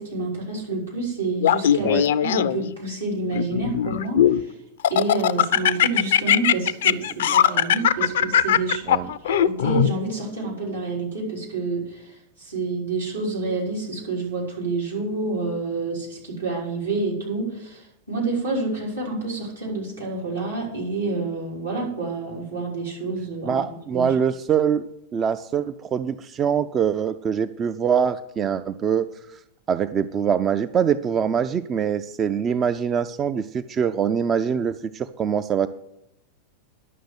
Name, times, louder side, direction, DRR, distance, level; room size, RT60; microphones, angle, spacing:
voice 1, 0.0-4.5 4.9-8.9 9.2-12.1 12.4-23.6 23.9-24.1, right 3 dB, 80° right, -5 dB, 5.2 m, -28 dB
Laughter, 1.4-2.7 3.3-4.4 4.8-9.9, left 10 dB, 60° left, 0.4 m, -19 dB
voice 2, 1.8-2.1 7.4-7.7 8.9-9.1 23.4-29.4 29.7-35.7, right 7 dB, 25° right, 12 dB, 0.4 m, -24 dB
11.0 x 6.5 x 8.0 m, 0.80 s
figure-of-eight pair, 90°, 0 cm